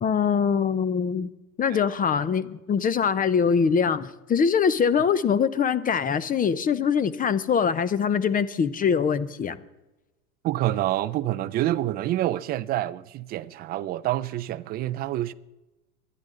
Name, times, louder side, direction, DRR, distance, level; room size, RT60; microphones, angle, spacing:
voice 1, 0.0-1.3 1.6-9.6, left 6 dB, 20° left, 0.7 m, -23 dB
voice 2, 10.4-15.3, right 14 dB, 20° right, 0.4 m, -27 dB
23.5 x 11.0 x 3.8 m
hypercardioid pair, 115°, 47 cm